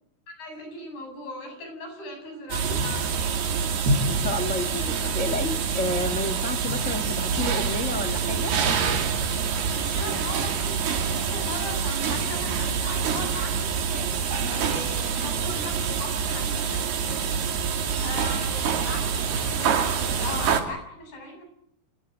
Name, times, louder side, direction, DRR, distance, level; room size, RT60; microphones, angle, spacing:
voice 1, 0.4-3.2 9.7-14.1 14.4-16.8 17.2-17.6 17.9-19.8 20.1-21.4, left 1 dB, 85° left, 5 dB, 9.9 m, -38 dB
sound 1, 2.5-20.6, right 6 dB, 85° right, 4.6 m, -26 dB
voice 2, 4.1-8.5, left 2 dB, 60° left, 10 dB, 0.7 m, -30 dB
27.0 x 20.5 x 8.0 m, 0.71 s
omnidirectional pair, 4.4 m